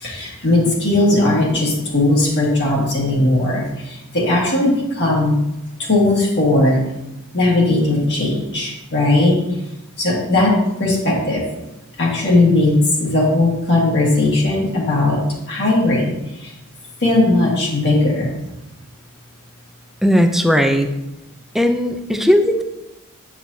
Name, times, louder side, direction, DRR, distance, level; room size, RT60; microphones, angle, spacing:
voice 1, 0.0-5.4 5.8-6.8 7.3-9.4 10.0-11.5 12.0-15.2 15.5-16.5 17.0-18.3, left 2 dB, 50° left, -4 dB, 1.8 m, -17 dB
voice 2, 20.0-20.9 21.5-22.6, equal, ahead, 6 dB, 0.5 m, -16 dB
9.0 x 6.1 x 2.7 m, 0.94 s
head